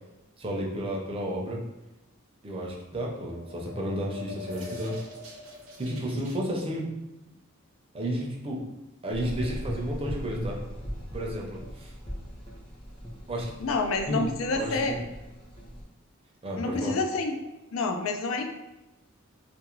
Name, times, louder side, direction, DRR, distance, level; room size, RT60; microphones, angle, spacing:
voice 1, 0.4-1.6 2.4-4.9 5.8-6.9 7.9-8.6 9.0-10.6 11.1-11.9 13.3-13.5 14.1-15.0 16.4-16.9, equal, 25° right, -1 dB, 0.6 m, -32 dB
sound 1, 3.2-6.4, left 3 dB, 85° right, 0.7 m, -43 dB
Gurgling / Engine, 9.1-15.8, equal, 25° left, 0.7 m, -39 dB
voice 2, 13.6-15.0 16.6-17.4 17.7-18.4, left 3 dB, 80° left, 4 dB, 0.4 m, -28 dB
2.6 x 2.5 x 3.0 m, 1.0 s
head